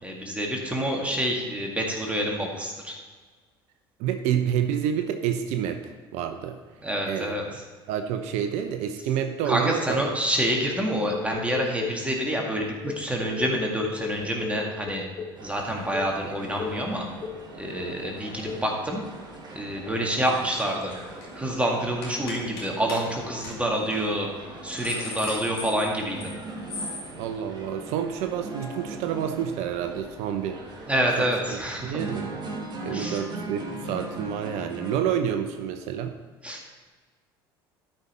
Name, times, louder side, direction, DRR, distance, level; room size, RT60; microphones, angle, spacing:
voice 1, 0.0-3.0 6.8-7.6 9.4-15.1 15.4-17.0 17.6-19.0 19.5-20.9 21.3-24.3 24.6-26.3 30.9-32.1 32.9-33.2 36.4-36.6, right 1 dB, 10° right, -1 dB, 1.9 m, -27 dB
voice 2, 4.0-6.6 7.1-7.3 7.9-10.0 27.2-30.6 31.2-32.3 32.8-36.1, right 9 dB, 60° right, 7 dB, 0.7 m, -28 dB
sound 1, 10.6-12.1 12.6-15.4 15.9-16.2 16.6-16.9 17.2-17.5 17.8-18.1 18.5-18.7, left 6 dB, 30° left, 1.2 m, -36 dB
sound 2, 15.4-35.0, right 2 dB, 35° right, 2.1 m, -40 dB
sound 3, 20.6-20.8 21.1-21.4 22.0-22.6 22.9-23.0 23.4-23.5 23.9-24.0 24.5-26.4 26.7-27.0, left 3 dB, 85° left, 2.6 m, -36 dB
12.5 x 5.6 x 4.2 m, 1.5 s
hypercardioid pair, 75°, 13 cm